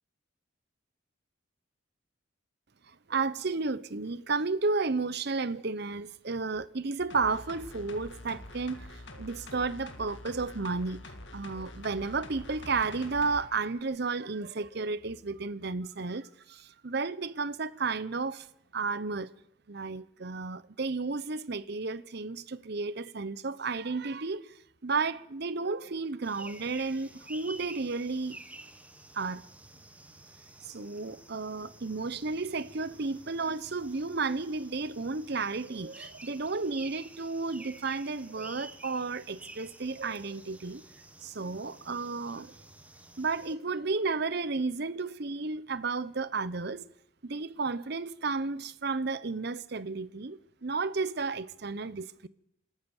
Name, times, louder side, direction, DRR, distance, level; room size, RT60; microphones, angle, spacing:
voice 1, 2.9-18.5 18.7-19.3 19.7-24.5 24.8-28.4 29.1-29.5 30.6-40.8 41.2-42.5 43.2-46.9 47.2-52.3, right 4 dB, 50° right, 0.8 m, -33 dB
sound 1, 7.1-13.4 13.8-13.9, left 1 dB, 60° left, 2.1 m, -46 dB
sound 2, 26.2-43.6, right 1 dB, 5° right, 1.1 m, -51 dB
26.5 x 13.5 x 7.1 m
head